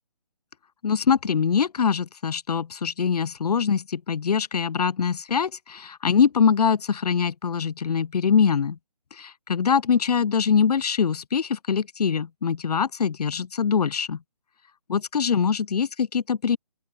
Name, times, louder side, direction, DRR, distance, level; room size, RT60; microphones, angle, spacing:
voice 1, 0.8-8.8 9.1-14.2 14.9-16.6, left 6 dB, 85° left, 0.5 m, -23 dB
open air
hypercardioid pair, 170°, 20 cm